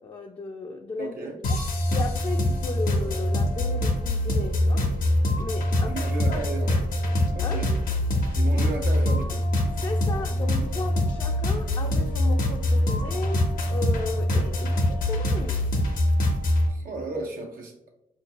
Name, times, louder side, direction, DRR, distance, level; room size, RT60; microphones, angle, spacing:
voice 1, 0.0-1.6 1.9-4.9 5.4-6.5 7.4-7.6 9.7-13.4 13.7-15.7, left 3 dB, 35° left, 2 dB, 0.4 m, -35 dB
voice 2, 1.0-1.4 5.9-6.8 7.3-7.7 8.3-9.5 16.7-17.9, right 3 dB, 85° right, 1 dB, 0.5 m, -34 dB
sound 1, 1.4-16.7, left 1 dB, 85° left, 0.6 m, -24 dB
4.4 x 2.6 x 2.8 m, 0.83 s
cardioid pair, 65°, 14 cm